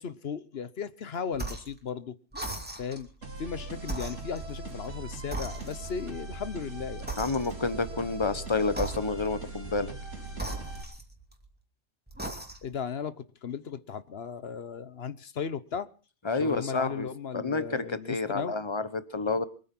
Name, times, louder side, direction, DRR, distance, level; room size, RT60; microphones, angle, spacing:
voice 1, 0.0-2.2 2.8-3.1 3.4-7.1 12.6-15.9 16.4-18.6, left 6 dB, 55° left, 15 dB, 1.1 m, -36 dB
sound 1, 1.3-1.8 2.3-3.1 3.8-4.9 5.3-6.1 7.1-7.8 8.7-9.4 10.3-11.5 12.1-12.8, right 2 dB, 5° right, 2.7 m, -38 dB
sound 2, 3.2-10.8, right 3 dB, 65° right, 3.7 m, -40 dB
voice 2, 7.2-9.9 16.2-17.1 17.3-19.5, left 3 dB, 25° left, 13 dB, 1.1 m, -29 dB
23.5 x 9.1 x 6.0 m, 0.39 s
omnidirectional pair, 1.3 m